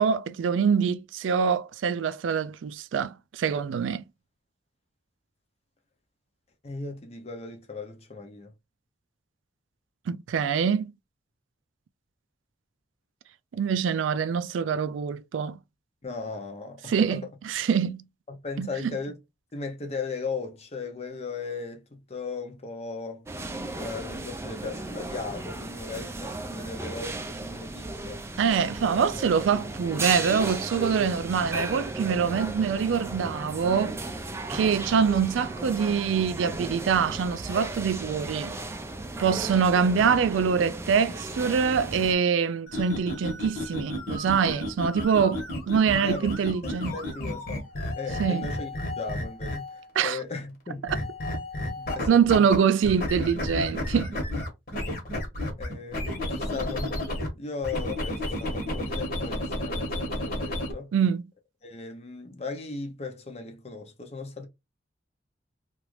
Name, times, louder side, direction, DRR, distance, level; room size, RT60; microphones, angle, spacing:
voice 1, 0.0-4.0 10.1-10.9 13.5-15.6 16.9-17.2 17.5-18.0 18.6-18.9 28.4-34.0 34.5-38.6 39.2-46.9 48.2-48.5 50.0-50.2 50.8-51.0 52.1-54.1 60.9-61.2, right 6 dB, 85° right, 0.3 m, -24 dB
voice 2, 6.6-8.5 16.0-17.2 18.3-19.2 19.5-23.3 23.8-28.2 46.0-46.3 46.6-47.6 48.0-48.7 49.0-50.8 51.8-52.5 55.6-60.9 61.6-64.5, left 4 dB, 35° left, 0.7 m, -37 dB
sound 1, 23.3-42.1, right 2 dB, 15° right, 0.4 m, -35 dB
sound 2, 42.7-49.9 50.9-52.6 52.8-57.3 57.6-60.7, left 1 dB, 50° left, 1.2 m, -32 dB
3.0 x 2.4 x 3.1 m
head